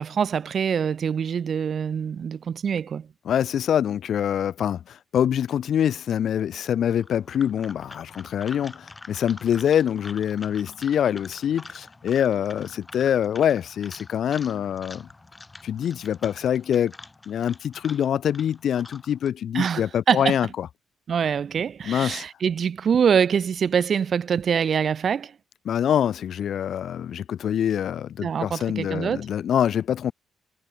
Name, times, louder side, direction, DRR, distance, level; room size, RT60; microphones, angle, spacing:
voice 1, 0.0-3.1 19.5-20.4 21.1-25.3 28.2-29.2, right 7 dB, 50° right, 1.4 m, -24 dB
voice 2, 3.3-15.1 15.6-16.9 17.3-20.7 21.8-22.2 25.7-30.1, left 9 dB, 65° left, 0.5 m, -25 dB
sound 1, 6.9-19.3, left 2 dB, 20° left, 6.0 m, -46 dB
cardioid pair, 90°, 0 cm